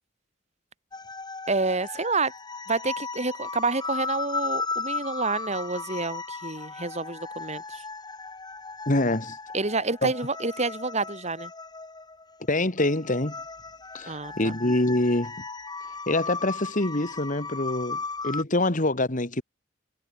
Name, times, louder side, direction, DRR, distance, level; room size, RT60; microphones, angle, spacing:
sound 1, 0.9-18.4, left 4 dB, 20° left, 4.3 m, -36 dB
voice 1, 1.5-2.3 2.7-7.8 9.5-11.5 14.1-14.5, right 3 dB, 35° right, 3.7 m, -28 dB
voice 2, 8.9-9.4 10.0-10.1 12.5-13.4 13.9-15.3 16.1-19.4, left 2 dB, 45° left, 2.3 m, -25 dB
head